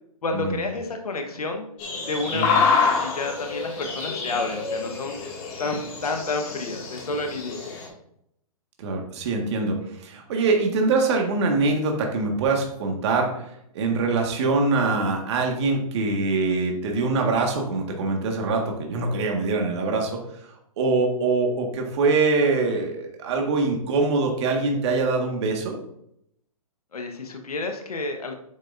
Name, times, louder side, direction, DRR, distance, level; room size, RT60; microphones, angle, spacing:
voice 1, 0.2-1.6 2.1-5.2 5.6-7.7 26.9-28.4, left 3 dB, 85° left, 5 dB, 1.3 m, -30 dB
sound 1, 1.8-7.9, left 5 dB, 30° left, 2.2 m, -27 dB
voice 2, 8.8-13.4 13.7-25.8, right 3 dB, 50° right, 2 dB, 1.7 m, -24 dB
9.0 x 6.7 x 2.6 m, 0.75 s
hypercardioid pair, 140°, 19 cm